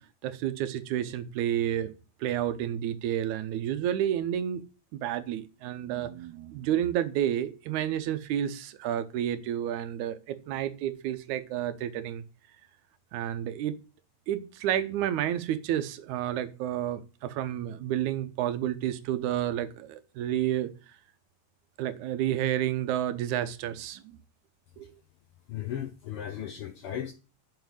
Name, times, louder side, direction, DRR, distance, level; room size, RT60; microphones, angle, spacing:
voice 1, 0.0-1.9 2.2-4.6 4.9-12.2 13.1-13.8 14.3-20.7 21.8-24.2 24.8-24.9, right 11 dB, 85° right, 2.2 m, -30 dB
voice 2, 25.5-27.1, left 10 dB, 70° left, 1.4 m, -36 dB
7.2 x 5.9 x 7.7 m
omnidirectional pair, 3.4 m